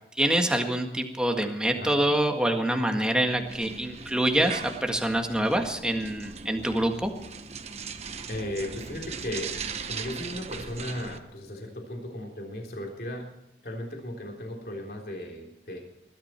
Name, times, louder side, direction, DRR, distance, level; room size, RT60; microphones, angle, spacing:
voice 1, 0.2-7.1, right 1 dB, 5° right, 4 dB, 1.7 m, -26 dB
sound 1, 3.3-11.2, right 5 dB, 35° right, 1.1 m, -39 dB
voice 2, 8.3-9.5 9.8-13.3 13.6-15.8, left 1 dB, 55° left, 1 dB, 3.6 m, -36 dB
21.0 x 12.5 x 4.5 m, 0.90 s
head